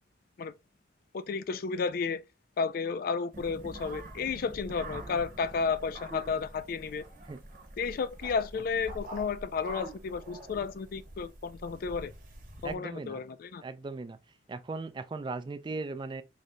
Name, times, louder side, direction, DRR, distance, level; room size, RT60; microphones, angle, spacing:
voice 1, 1.1-2.2 2.6-7.0 7.8-12.1 12.6-13.6, left 5 dB, 55° left, 0.3 m, -32 dB
sound 1, 3.3-12.7, right 1 dB, 50° right, 0.9 m, -46 dB
voice 2, 12.6-13.2 13.6-14.2 14.5-16.2, right 3 dB, 25° right, 0.3 m, -38 dB
3.2 x 2.7 x 3.7 m
head